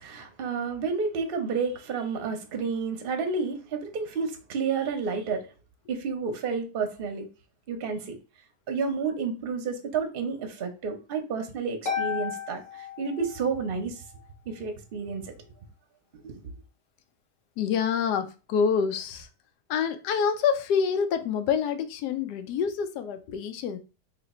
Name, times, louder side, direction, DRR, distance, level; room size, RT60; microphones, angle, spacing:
voice 1, 0.0-5.4 5.9-7.3 7.7-8.2 8.7-14.0 14.5-15.3 16.2-16.3, right 5 dB, 50° right, 0.7 m, -30 dB
Harp, 11.9-13.7, left 7 dB, 40° left, 0.7 m, -33 dB
voice 2, 17.6-19.3 19.7-23.8, left 7 dB, 85° left, 1.2 m, -27 dB
3.0 x 2.8 x 4.1 m
omnidirectional pair, 1.7 m